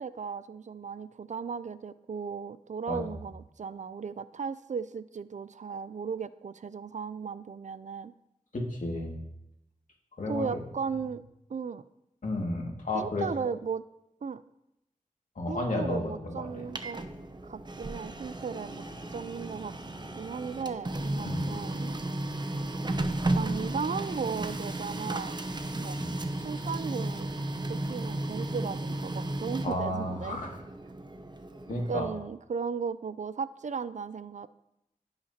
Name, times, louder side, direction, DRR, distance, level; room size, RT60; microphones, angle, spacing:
voice 1, 0.0-8.1 10.3-11.2 11.5-11.8 12.9-13.8 14.2-14.4 15.5-17.0 17.4-18.8 19.1-19.7 20.2-22.0 23.3-25.4 25.8-26.0 26.4-27.3 27.7-30.4 31.9-34.5, right 6 dB, 60° right, 15 dB, 0.4 m, -36 dB
voice 2, 8.5-9.2 10.2-10.5 12.2-13.5 15.4-16.5 21.2-21.5 26.0-26.1 29.6-30.6 31.7-32.1, left 1 dB, 65° left, -1 dB, 2.2 m, -32 dB
Printer, 16.4-32.2, right 1 dB, 30° right, 0.8 m, -34 dB
16.0 x 5.8 x 2.9 m, 0.84 s
cardioid pair, 55°, 14 cm